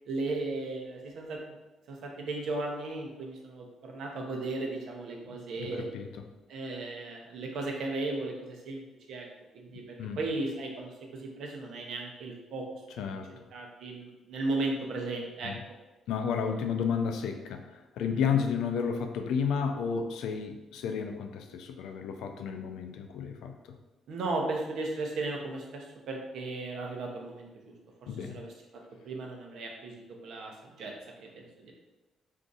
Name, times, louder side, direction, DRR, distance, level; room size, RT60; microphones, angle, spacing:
voice 1, 0.1-1.6 1.9-5.9 6.5-8.8 9.1-9.3 9.5-9.8 10.2-12.6 13.5-15.5 18.2-18.4 24.1-27.7 28.3-28.5 29.0-30.9 31.2-31.7, right 2 dB, 75° right, 1 dB, 0.7 m, -35 dB
voice 2, 5.3-6.1 9.7-10.2 13.0-13.3 15.4-15.6 16.1-23.8 28.1-28.5, left 6 dB, 85° left, 5 dB, 0.3 m, -32 dB
2.6 x 2.4 x 3.9 m, 1.1 s
cardioid pair, 90°, 0 cm